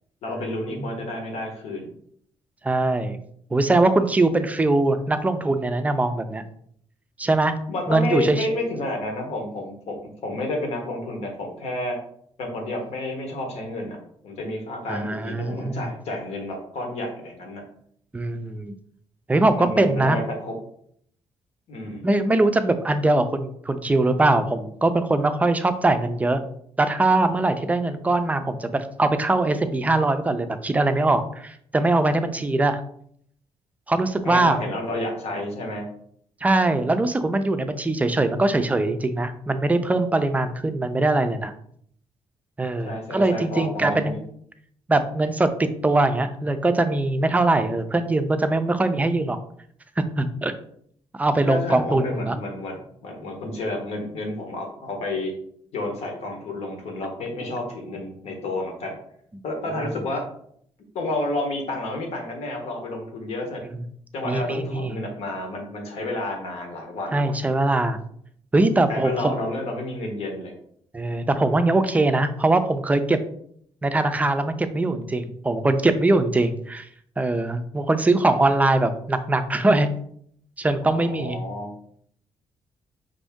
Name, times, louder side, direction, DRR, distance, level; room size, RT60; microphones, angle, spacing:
voice 1, 0.2-1.9 7.7-12.0 12.4-14.0 14.2-17.6 19.5-20.5 21.7-22.0 34.2-35.8 42.8-44.2 51.5-55.3 55.7-59.0 59.4-60.2 60.9-63.6 64.1-67.2 68.9-70.5 80.8-81.7, left 2 dB, 80° left, 2 dB, 1.1 m, -30 dB
voice 2, 2.6-3.2 3.5-6.4 7.2-7.5 7.9-8.5 14.9-15.9 18.1-18.7 19.3-20.2 22.0-26.4 26.8-32.8 33.9-34.6 36.4-41.5 42.6-44.2 44.9-49.4 50.2-50.5 51.2-52.4 64.2-64.9 67.1-68.0 68.5-69.4 70.9-73.2 73.8-76.9 77.2-79.9 80.6-81.4, right 2 dB, 15° right, 9 dB, 0.4 m, -22 dB
5.3 x 2.6 x 3.5 m, 0.66 s
cardioid pair, 140°, 11 cm